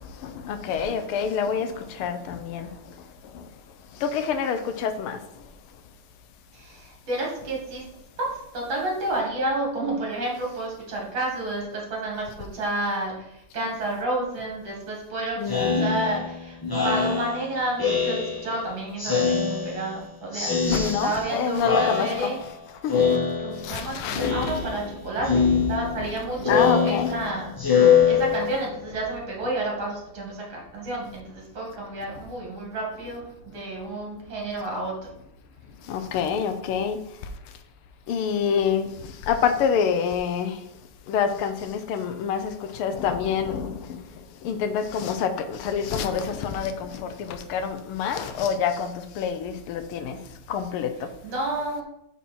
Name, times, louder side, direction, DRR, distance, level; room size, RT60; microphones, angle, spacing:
voice 1, 0.2-2.7 4.0-5.2 15.4-16.0 20.7-22.3 22.8-23.0 23.6-24.8 26.5-27.1 35.9-37.0 38.1-38.9 39.3-40.6 41.1-44.0 44.4-50.2 50.5-50.9, left 7 dB, 80° left, 1.6 m, -27 dB
voice 2, 6.5-7.9 8.2-22.4 23.4-35.0 51.2-51.8, right 2 dB, 65° right, 2.8 m, -30 dB
Speech synthesizer, 15.5-18.6 19.0-20.0 20.3-21.3 21.6-22.5 22.9-23.8 24.1-24.9 25.2-28.8, left 6 dB, 20° left, 0.6 m, -24 dB
8.2 x 4.4 x 4.3 m
omnidirectional pair, 2.4 m